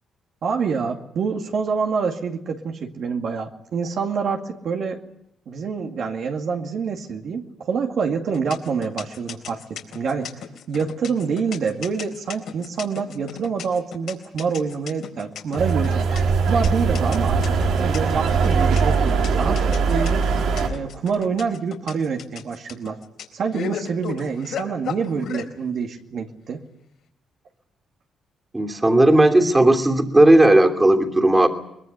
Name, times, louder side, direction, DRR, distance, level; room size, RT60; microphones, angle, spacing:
voice 1, 0.4-5.0 5.5-10.3 10.7-16.1 16.4-17.4 17.7-20.2 20.6-23.0 23.3-26.6, right 5 dB, 60° right, 2 dB, 2.2 m, -26 dB
sound 1, 8.3-25.5, left 8 dB, 70° left, 4.0 m, -34 dB
sound 2, 15.6-20.7, right 5 dB, 80° right, 3.4 m, -20 dB
voice 2, 28.5-31.5, right 1 dB, 15° right, 3 dB, 3.0 m, -15 dB
22.5 x 21.0 x 8.2 m, 0.78 s
cardioid pair, 90°, 0 cm